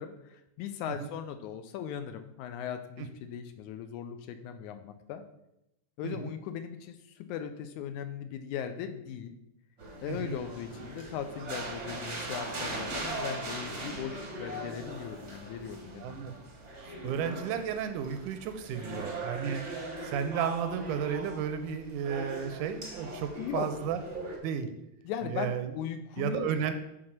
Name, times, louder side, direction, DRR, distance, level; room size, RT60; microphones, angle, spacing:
voice 1, 0.0-5.2 6.0-9.3 10.0-16.3 23.4-23.7 25.0-26.5, left 9 dB, 80° left, 9 dB, 1.9 m, -38 dB
sound 1, 9.8-24.4, right 2 dB, 50° right, 0.8 m, -40 dB
voice 2, 16.0-16.3 16.8-19.6 20.0-24.0 24.4-24.7 25.2-25.7 26.2-26.7, right 8 dB, 85° right, 9 dB, 2.1 m, -33 dB
7.6 x 4.1 x 5.8 m, 0.87 s
omnidirectional pair, 3.6 m